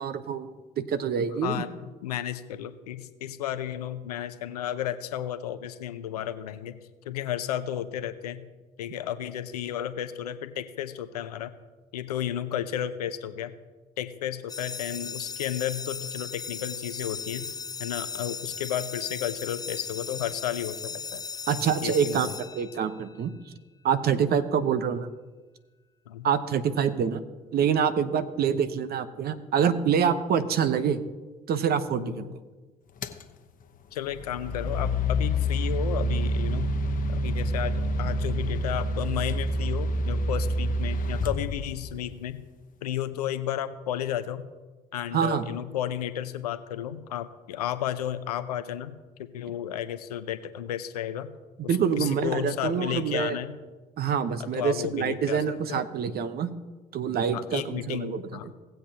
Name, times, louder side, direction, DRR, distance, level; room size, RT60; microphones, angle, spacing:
voice 1, 0.0-1.6 21.5-22.3 22.5-23.3 23.8-25.1 26.2-27.2 27.5-31.0 31.5-32.3 45.1-45.5 51.7-53.4 54.0-56.5 56.9-58.5, right 7 dB, 55° right, 11 dB, 0.9 m, -26 dB
voice 2, 2.0-6.8 7.0-8.4 8.8-11.5 11.9-13.5 14.0-17.5 17.8-21.2 21.8-22.3 26.1-26.3 32.0-32.3 33.9-36.7 37.1-42.4 42.8-44.4 44.9-48.9 49.2-51.3 51.6-53.5 54.5-55.4 55.7-55.8 57.3-58.5, left 11 dB, 90° left, 12 dB, 0.6 m, -33 dB
sound 1, 14.5-23.2, left 5 dB, 20° left, 0.4 m, -37 dB
sound 2, 33.0-33.2 34.1-42.1, equal, 45° left, 1.0 m, -27 dB
18.0 x 7.9 x 2.9 m, 1.3 s
hypercardioid pair, 55°, 19 cm